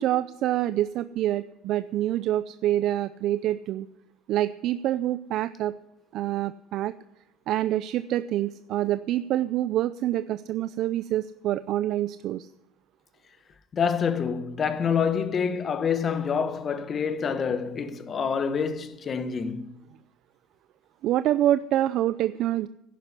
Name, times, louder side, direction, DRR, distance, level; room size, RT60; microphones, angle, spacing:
voice 1, 0.0-3.9 4.3-5.7 6.1-6.9 7.5-12.5 21.0-22.7, right 13 dB, 60° right, 0.5 m, -26 dB
voice 2, 13.7-19.7, left 6 dB, 35° left, 1.3 m, -27 dB
11.0 x 10.5 x 9.9 m
supercardioid pair, 110°, 0 cm